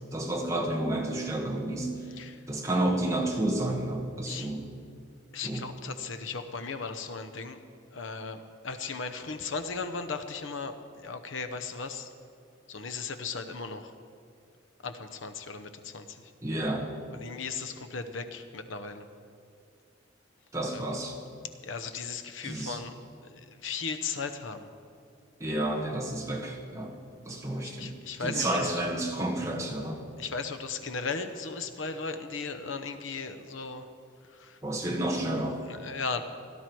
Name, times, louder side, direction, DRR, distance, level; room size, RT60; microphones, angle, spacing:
voice 1, 0.1-2.0 2.5-4.6 5.4-5.6 16.4-16.9 20.5-21.1 22.4-22.8 25.4-26.9 27.2-27.9 28.2-30.0 34.6-35.6, right 1 dB, 15° right, -1 dB, 1.5 m, -30 dB
voice 2, 5.3-7.6 7.9-12.1 12.7-13.9 14.8-16.3 17.1-19.1 20.7-20.9 21.6-22.9 23.3-24.7 27.6-28.8 30.2-33.9 34.3-34.6 35.6-36.2, left 4 dB, 75° left, 9 dB, 0.9 m, -37 dB
17.0 x 12.0 x 4.6 m, 2.4 s
head